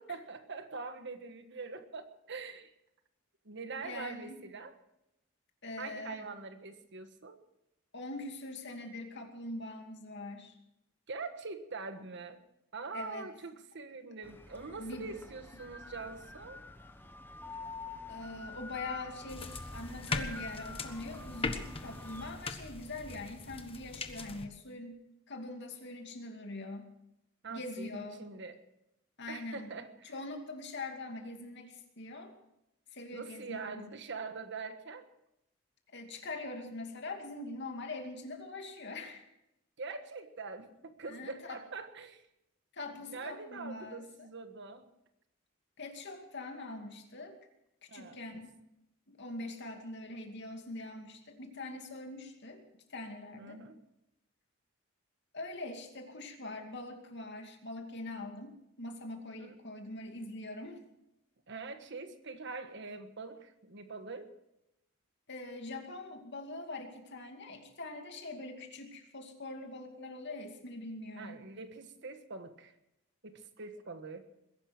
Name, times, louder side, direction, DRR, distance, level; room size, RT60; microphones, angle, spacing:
voice 1, 0.0-2.7 3.4-4.7 5.8-7.4 11.1-12.4 12.7-16.6 27.4-28.6 29.3-30.1 33.1-35.1 39.8-42.3 42.9-44.9 47.9-48.2 53.3-53.8 59.4-59.5 61.5-64.3 71.2-72.7 73.2-74.3, right 4 dB, 60° right, 8 dB, 1.5 m, -44 dB
voice 2, 3.8-4.3 5.6-6.3 7.9-10.6 12.9-13.3 14.8-15.1 18.1-25.0 25.3-26.9 27.5-28.2 29.2-29.7 30.0-32.3 32.9-33.8 35.9-39.2 41.1-41.6 42.7-44.0 45.8-47.4 47.8-48.5 49.1-52.6 52.9-53.6 55.3-60.8 65.3-71.4, left 2 dB, 55° left, 4 dB, 2.5 m, -43 dB
sound 1, 14.2-22.3, left 3 dB, 10° left, 1.1 m, -47 dB
sound 2, 19.3-24.5, left 3 dB, 30° left, 1.3 m, -40 dB
21.0 x 11.0 x 6.1 m, 0.85 s
head